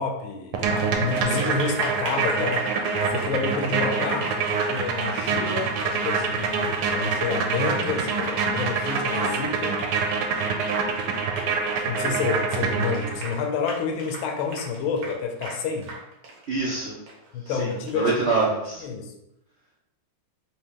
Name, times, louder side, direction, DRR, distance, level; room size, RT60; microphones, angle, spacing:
voice 1, 0.0-2.7 3.1-9.8 11.8-15.9 17.3-18.4 18.8-19.1, left 5 dB, 80° left, 3 dB, 1.4 m, -29 dB
sound 1, 0.5-13.3, right 5 dB, 90° right, 1.5 m, -26 dB
Applause, 0.6-18.3, right 3 dB, 55° right, 1.2 m, -39 dB
voice 2, 16.5-17.0 17.4-18.8, right 3 dB, 75° right, -6 dB, 0.6 m, -26 dB
4.6 x 2.9 x 3.5 m, 0.89 s
omnidirectional pair, 2.3 m